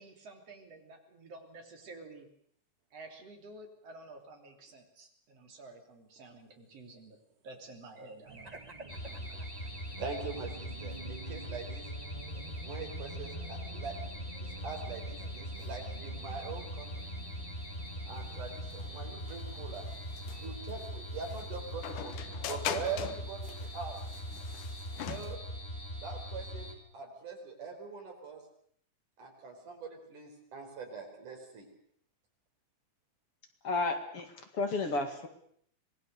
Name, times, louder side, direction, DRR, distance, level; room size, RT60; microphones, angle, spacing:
voice 1, 0.0-2.3 2.9-8.6 9.1-9.5, right 2 dB, 50° right, 3 dB, 4.3 m, -51 dB
Race car auto racing / Alarm, 8.3-25.2, right 2 dB, 20° right, 1.1 m, -51 dB
sound 1, 8.9-26.8, equal, 20° left, 3.2 m, -41 dB
voice 2, 10.0-11.8 12.6-13.9 14.4-17.1 18.0-19.9 20.4-24.0 25.1-25.4 26.0-26.7 26.9-28.4 29.2-31.7, right 5 dB, 75° right, 3 dB, 6.1 m, -42 dB
Hammer handling foley, 14.5-25.4, left 10 dB, 80° left, 2.7 m, -43 dB
voice 3, 33.6-35.3, left 3 dB, 50° left, 6 dB, 2.7 m, -32 dB
26.0 x 20.0 x 6.7 m, 0.66 s
omnidirectional pair, 3.6 m